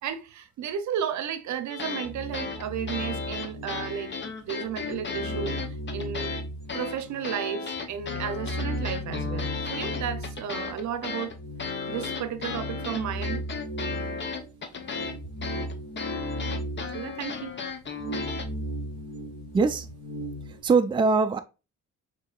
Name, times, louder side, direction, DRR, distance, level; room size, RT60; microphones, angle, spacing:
voice 1, 0.0-4.1 4.4-5.6 5.9-6.3 6.7-11.3 11.9-13.4 16.9-17.5, right 8 dB, 70° right, 0.7 m, -33 dB
sound 1, 1.7-2.1 2.3-6.4 6.7-18.4, left 5 dB, 40° left, 0.9 m, -35 dB
sound 2, 2.0-4.3 4.6-7.4 7.7-20.6, equal, 55° left, 1.7 m, -36 dB
voice 2, 19.5-19.9 20.5-21.4, right 4 dB, 15° right, 0.4 m, -22 dB
6.2 x 2.8 x 2.4 m
cardioid pair, 90°, 30 cm